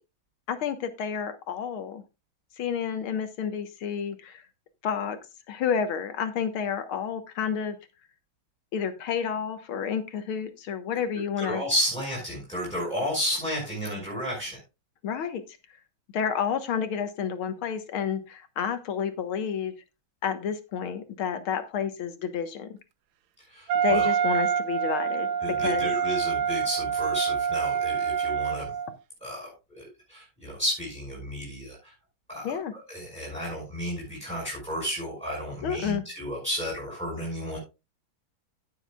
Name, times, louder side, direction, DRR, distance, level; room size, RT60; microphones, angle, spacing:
voice 1, 0.5-2.0 2.6-4.4 4.8-5.2 5.5-7.8 8.7-11.6 15.0-15.4 16.1-19.7 20.2-22.8 23.8-25.9 32.4-32.7 35.6-36.0, left 7 dB, 85° left, 9 dB, 2.1 m, -30 dB
voice 2, 11.4-14.6 23.5-24.1 25.4-28.7 29.2-31.9 32.3-32.5 32.9-37.6, equal, 5° left, -2 dB, 5.6 m, -32 dB
Wind instrument woodwind instrument, 23.7-29.0, right 7 dB, 85° right, 1.7 m, -26 dB
16.5 x 7.2 x 2.4 m, 0.27 s
omnidirectional pair, 2.3 m